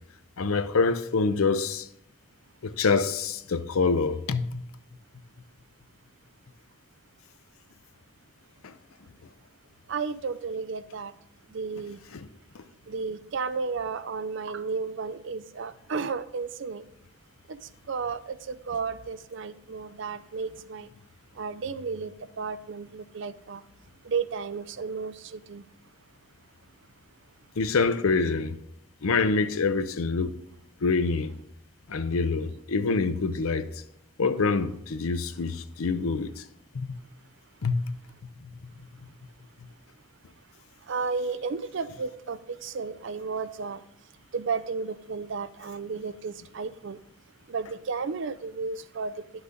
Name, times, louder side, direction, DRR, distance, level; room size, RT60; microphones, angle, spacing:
voice 1, 0.4-1.8 2.6-4.6 12.1-12.3 27.6-28.6 29.0-30.3 30.8-31.3 31.9-33.7 34.2-36.3 36.7-37.0 37.6-37.8, left 4 dB, 80° left, 0.6 m, -26 dB
voice 2, 9.9-11.1 11.5-12.0 12.9-16.8 17.5-17.6 17.9-20.9 21.4-22.1 22.4-23.6 24.1-25.6 40.9-43.8 44.3-47.0 47.5-49.1, right 5 dB, 60° right, 0.4 m, -33 dB
11.0 x 5.9 x 3.8 m
head